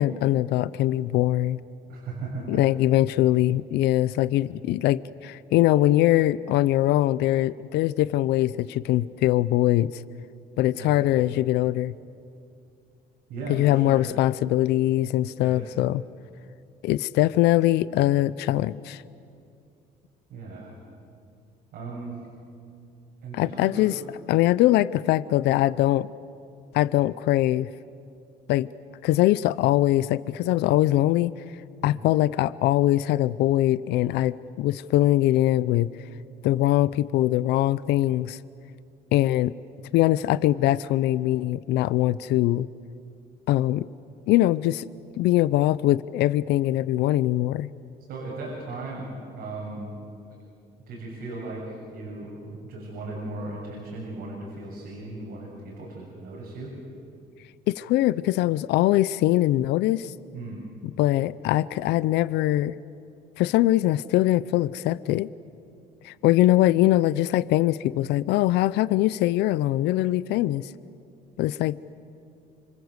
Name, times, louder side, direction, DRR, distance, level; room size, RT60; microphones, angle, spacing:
voice 1, 0.0-1.6 2.5-10.0 10.6-11.9 13.5-16.0 16.8-19.0 23.3-24.0 24.3-26.1 26.7-27.7 28.5-28.7 29.0-31.3 31.8-35.9 36.4-38.4 39.1-39.5 39.9-42.7 43.5-43.9 44.3-44.9 45.2-47.7 57.7-60.1 61.0-62.8 63.4-65.3 66.0-70.7 71.4-71.8, left 15 dB, 80° left, 17 dB, 0.6 m, -22 dB
voice 2, 1.9-2.6 10.8-11.0 13.3-14.1 15.4-15.6 20.3-20.8 21.7-22.2 23.2-23.9 31.8-32.0 48.1-49.9 50.9-56.7 60.3-60.6, right 2 dB, 80° right, -4 dB, 7.2 m, -37 dB
28.0 x 25.5 x 8.1 m, 2.5 s
cardioid pair, 110°, 17 cm